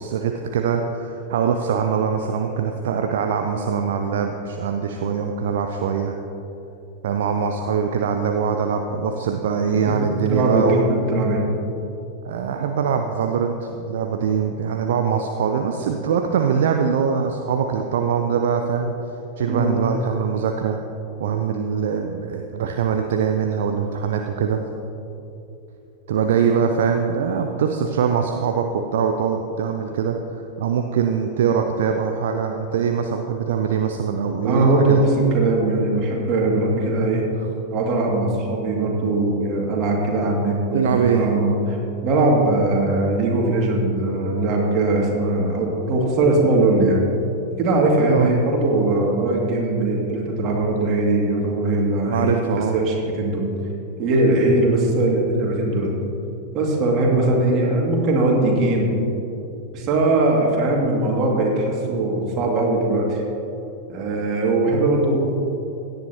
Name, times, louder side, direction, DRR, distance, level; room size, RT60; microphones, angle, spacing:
voice 1, 0.0-6.2 7.0-11.0 12.2-18.9 19.4-20.8 21.2-24.6 26.1-35.1 37.4-37.5 40.7-41.3 48.1-48.4 52.1-52.8, right 7 dB, 60° right, 4 dB, 0.6 m, -23 dB
voice 2, 9.9-11.4 19.5-19.8 34.4-37.2 37.7-41.8 42.0-47.1 47.6-52.4 52.7-53.5 54.0-55.9 56.5-58.9 59.7-63.2 63.9-65.2, right 2 dB, 35° right, -2 dB, 2.5 m, -20 dB
16.5 x 10.5 x 3.0 m, 2.9 s
figure-of-eight pair, 90°, 0 cm